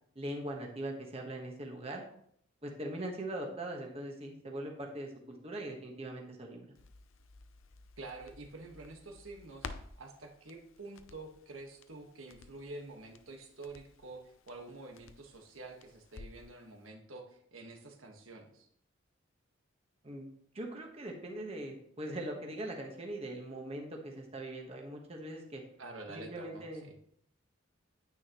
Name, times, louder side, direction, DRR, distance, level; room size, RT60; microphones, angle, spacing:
voice 1, 0.1-2.0 2.6-6.7 20.0-25.6 26.1-26.9, right 1 dB, 30° right, 1 dB, 1.3 m, -41 dB
Crackle, 6.8-16.6 16.9-17.0, left 4 dB, 80° left, 0.7 m, -53 dB
voice 2, 8.0-9.7 10.0-18.7 25.8-26.7, right 2 dB, 85° right, 2 dB, 1.5 m, -48 dB
9.7 x 8.8 x 3.0 m, 0.68 s
head